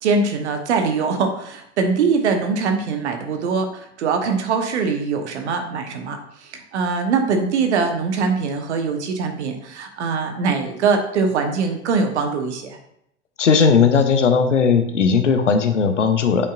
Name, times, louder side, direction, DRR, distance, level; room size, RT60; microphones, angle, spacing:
voice 1, 0.0-12.8, right 4 dB, 75° right, 5 dB, 1.1 m, -22 dB
voice 2, 13.4-16.5, left 5 dB, 90° left, 8 dB, 0.7 m, -17 dB
8.2 x 5.5 x 2.5 m, 0.75 s
hypercardioid pair, 80°, 35 cm